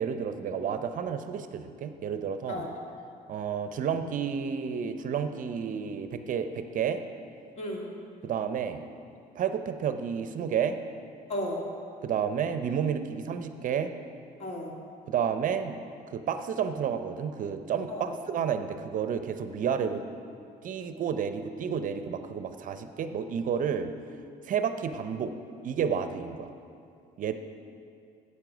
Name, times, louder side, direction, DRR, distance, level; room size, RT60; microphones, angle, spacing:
voice 1, 0.0-2.7 3.3-7.0 8.2-8.8 9.4-10.8 12.0-13.9 15.1-15.8 16.1-20.0 20.6-23.9 24.4-25.3 25.6-26.5 27.2-27.3, right 7 dB, 50° right, 9 dB, 0.6 m, -31 dB
voice 2, 7.6-7.9 11.3-11.6 14.4-14.7 17.9-18.1, left 1 dB, 40° left, -1 dB, 2.0 m, -34 dB
8.9 x 8.4 x 6.0 m, 2.4 s
cardioid pair, 110°, 17 cm